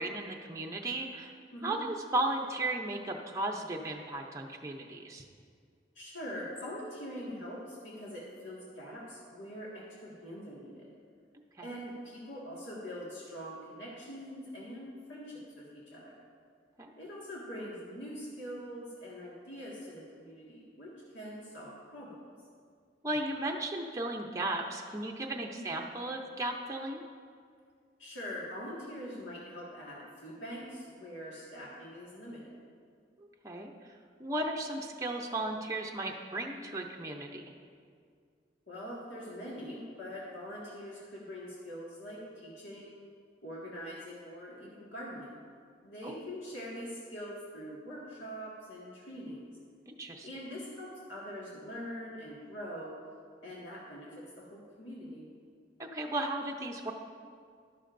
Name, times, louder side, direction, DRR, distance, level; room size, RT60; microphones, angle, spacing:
voice 1, 0.0-1.3 1.6-5.2 11.6-11.7 16.8-16.9 23.0-27.0 33.2-33.7 34.2-37.4 46.0-46.1 49.9-50.3 55.8-56.9, right 2 dB, 15° right, 0 dB, 0.6 m, -35 dB
voice 2, 6.0-10.9 11.6-16.1 17.0-22.3 25.3-25.7 28.0-32.6 38.7-43.0 43.4-45.4 45.8-49.5 50.2-52.9 53.4-54.2 54.5-55.2, equal, 80° left, -6 dB, 1.8 m, -43 dB
12.0 x 12.0 x 2.6 m, 2.1 s
head